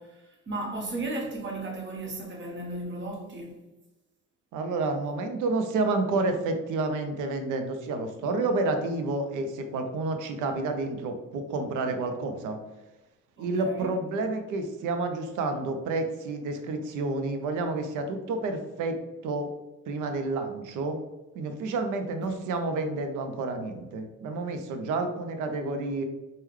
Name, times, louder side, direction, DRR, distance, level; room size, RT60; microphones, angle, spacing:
voice 1, 0.0-3.6 13.4-13.9 22.2-22.4, right 2 dB, 40° right, 1.0 m, -35 dB
voice 2, 4.5-12.6 13.4-19.0 19.2-19.5 19.9-21.0 21.3-26.0, right 3 dB, 85° right, 0.6 m, -29 dB
3.5 x 2.2 x 3.1 m
cardioid pair, 90°, 30 cm